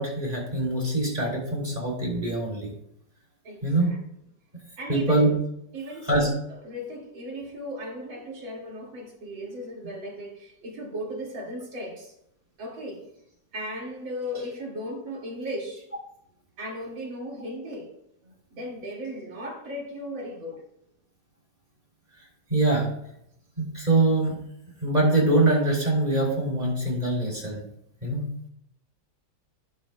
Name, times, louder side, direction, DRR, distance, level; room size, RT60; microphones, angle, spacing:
voice 1, 0.0-2.7 3.6-3.9 4.9-5.3 6.1-6.3 22.5-22.9 23.6-24.4 24.8-27.6 28.0-28.2, right 2 dB, 20° right, -2 dB, 3.1 m, -23 dB
voice 2, 3.4-4.0 4.8-5.3 5.7-6.3 6.6-12.1 12.6-13.1 13.5-15.9 16.6-17.9 18.2-20.6, equal, 85° right, -1 dB, 3.0 m, -36 dB
12.0 x 10.0 x 2.3 m, 0.75 s
omnidirectional pair, 2.1 m